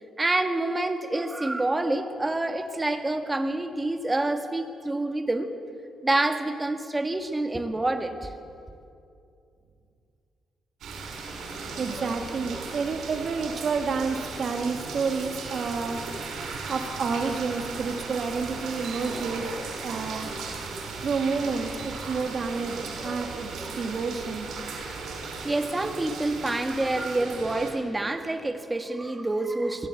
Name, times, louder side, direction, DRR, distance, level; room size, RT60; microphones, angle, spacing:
voice 1, 0.2-5.5 6.0-8.3 25.4-29.9, right 2 dB, 20° right, 7 dB, 1.8 m, -27 dB
sound 1, 10.8-27.7, right 4 dB, 80° right, 5.4 m, -36 dB
voice 2, 11.8-16.0 16.7-19.5 19.8-20.3 21.0-22.8 23.0-24.5, right 5 dB, 55° right, 5 dB, 2.3 m, -29 dB
22.0 x 17.0 x 8.5 m, 2.5 s
cardioid pair, 85°, 0 cm